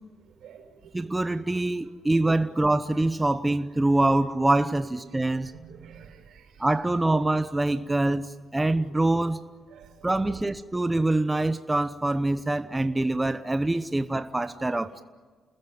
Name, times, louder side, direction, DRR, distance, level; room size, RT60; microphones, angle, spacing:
voice 1, 0.2-1.5 2.3-2.5 2.9-3.0 3.6-3.7 5.0-6.7 8.6-9.0 9.7-10.4 12.6-12.8, right 7 dB, 75° right, 5.6 m, -50 dB
voice 2, 0.9-5.5 6.6-9.4 10.0-15.0, right 2 dB, 15° right, 0.9 m, -25 dB
29.5 x 20.5 x 9.5 m
cardioid pair, 90°, 0 cm